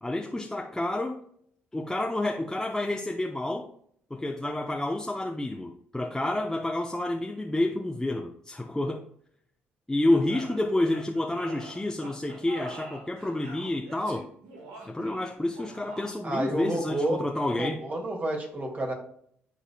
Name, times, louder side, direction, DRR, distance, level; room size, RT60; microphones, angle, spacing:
voice 1, 0.0-1.2 1.7-3.7 4.1-9.1 9.9-14.2 14.9-17.8, left 1 dB, 10° left, 2 dB, 0.7 m, -29 dB
sound 1, 10.1-16.4, right 2 dB, 85° right, 1.6 m, -45 dB
voice 2, 16.2-17.2 17.6-18.9, right 1 dB, 35° right, 1 dB, 2.1 m, -30 dB
11.0 x 4.1 x 2.3 m, 0.65 s
hypercardioid pair, 55°, 5 cm